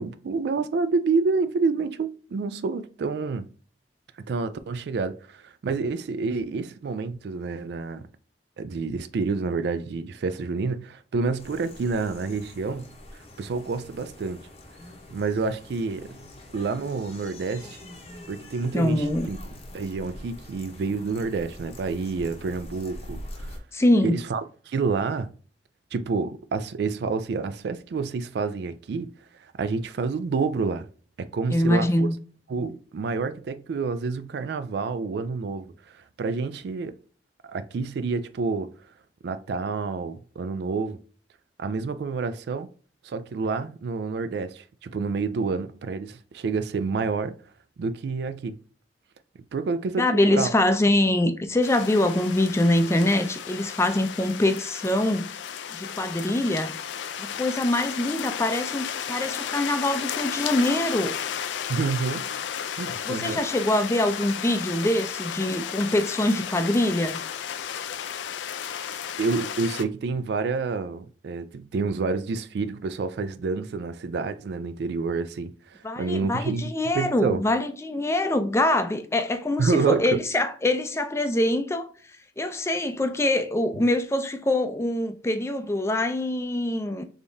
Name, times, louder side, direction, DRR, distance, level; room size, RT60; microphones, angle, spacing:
voice 1, 0.0-3.5 4.3-8.1 8.6-12.9 13.4-14.4 15.1-16.1 16.5-17.8 18.3-19.4 19.7-23.6 24.0-25.3 25.9-29.1 29.6-30.9 31.2-32.1 32.5-37.0 37.4-38.7 39.2-41.0 41.6-42.7 43.0-47.4 47.8-48.6 49.5-50.5 61.7-62.3 62.8-63.4 69.2-77.4 79.6-80.2, right 4 dB, 65° right, 0.3 m, -28 dB
sound 1, 11.4-23.6, left 1 dB, 35° left, 0.8 m, -44 dB
voice 2, 18.7-19.3 23.7-24.2 31.5-32.2 50.0-55.4 55.7-56.7 57.2-61.2 63.1-67.2 75.8-81.9 82.4-87.0, left 1 dB, 15° left, 0.4 m, -24 dB
sound 2, 51.6-69.8, left 8 dB, 90° left, 0.4 m, -33 dB
3.5 x 3.4 x 2.6 m
head